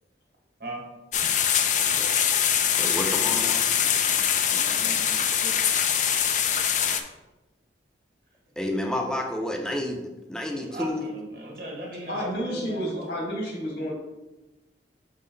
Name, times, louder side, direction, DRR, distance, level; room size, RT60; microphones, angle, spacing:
sound 1, 1.1-7.0, left 8 dB, 45° left, 0.4 m, -23 dB
voice 1, 2.8-3.7 8.6-11.0, left 1 dB, 5° left, 2 dB, 0.6 m, -30 dB
voice 2, 4.6-5.6 10.5-12.9, right 1 dB, 60° right, -3 dB, 1.8 m, -37 dB
voice 3, 12.1-13.9, equal, 75° left, -2 dB, 2.0 m, -31 dB
5.8 x 4.2 x 3.9 m, 1.1 s
head